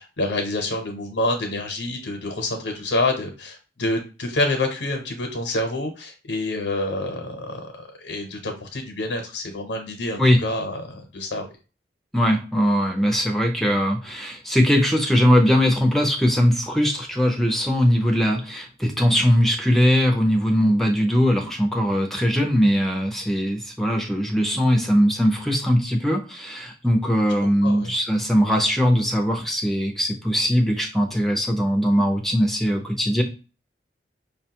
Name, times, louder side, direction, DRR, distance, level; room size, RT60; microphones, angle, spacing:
voice 1, 0.0-11.5 27.4-27.9, left 2 dB, 85° left, 3 dB, 0.8 m, -27 dB
voice 2, 12.1-33.2, equal, ahead, 2 dB, 0.5 m, -20 dB
5.4 x 2.2 x 2.8 m, 0.34 s
head